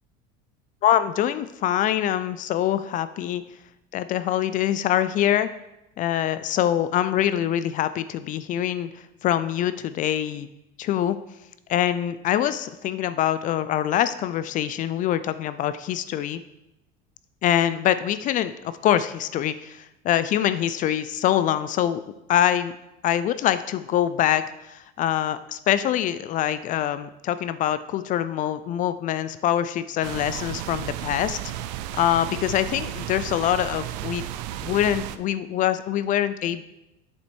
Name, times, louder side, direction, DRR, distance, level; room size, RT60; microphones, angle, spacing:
voice 1, 0.8-3.4 3.9-5.5 6.0-8.9 9.2-10.5 10.8-11.2 11.7-16.4 17.4-22.0 22.3-22.7 23.0-31.4 32.0-34.2 34.6-36.6, left 11 dB, 40° left, 14 dB, 0.4 m, -24 dB
sound 1, 30.0-35.2, right 13 dB, 85° right, 0.5 m, -33 dB
7.8 x 5.8 x 4.4 m, 0.93 s
supercardioid pair, 130°, 21 cm